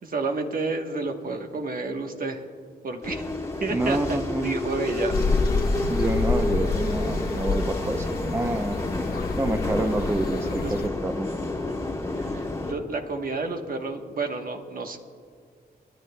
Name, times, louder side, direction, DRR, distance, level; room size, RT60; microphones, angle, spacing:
voice 1, 0.0-2.4 2.8-3.2 3.6-5.2 10.6-10.7 12.1-15.0, right 3 dB, 60° right, 5 dB, 1.1 m, -30 dB
sound 1, 3.0-12.7, left 2 dB, 15° left, 1.4 m, -30 dB
voice 2, 3.7-4.6 5.9-8.8 9.4-11.3, right 2 dB, 15° right, 7 dB, 0.5 m, -28 dB
sound 2, 5.1-10.9, left 4 dB, 65° left, 0.9 m, -28 dB
29.5 x 10.5 x 2.2 m, 2.2 s
wide cardioid pair, 110°, 17 cm